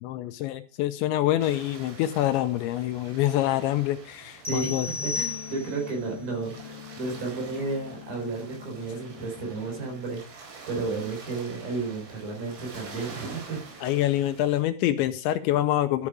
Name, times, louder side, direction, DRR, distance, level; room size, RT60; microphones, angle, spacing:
voice 1, 0.0-4.9 13.8-16.1, left 13 dB, 80° left, 10 dB, 2.8 m, -26 dB
sound 1, 1.4-14.6, right 4 dB, 75° right, 6.6 m, -47 dB
sound 2, 4.4-6.0, left 4 dB, 5° right, 3.9 m, -33 dB
voice 2, 4.5-13.6, right 3 dB, 50° right, 1 dB, 5.7 m, -33 dB
sound 3, 5.1-10.1, left 11 dB, 50° left, 2.1 m, -45 dB
13.0 x 8.6 x 4.8 m, 0.37 s
omnidirectional pair, 5.5 m